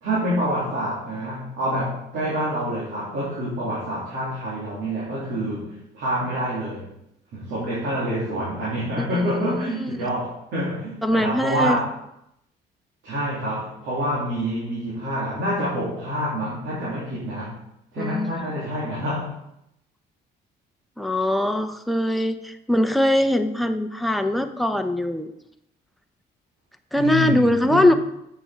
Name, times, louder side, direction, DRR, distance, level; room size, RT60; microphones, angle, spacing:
voice 1, 0.0-6.9 7.3-11.9 13.0-17.6 17.9-19.4 26.9-27.9, equal, 85° right, -7 dB, 2.6 m, -27 dB
voice 2, 9.0-10.0 11.0-11.8 18.0-18.3 21.0-25.3 26.9-27.9, left 1 dB, ahead, 6 dB, 0.7 m, -22 dB
8.2 x 6.1 x 4.5 m, 0.81 s
cardioid pair, 90°, 20 cm